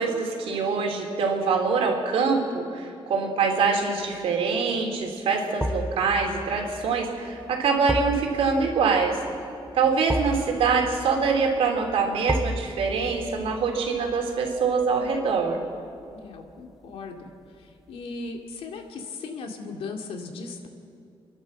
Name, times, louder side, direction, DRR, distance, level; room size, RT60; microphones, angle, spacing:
voice 1, 0.0-9.2 9.7-15.6, right 5 dB, 85° right, 2 dB, 3.4 m, -24 dB
sound 1, 3.8-4.2 5.6-16.6 16.9-17.1, equal, 5° right, 0.7 m, -35 dB
voice 2, 16.1-17.3 17.6-20.7, left 3 dB, 90° left, 3 dB, 2.4 m, -37 dB
30.0 x 11.5 x 7.5 m, 2.6 s
wide cardioid pair, 170°, 10 cm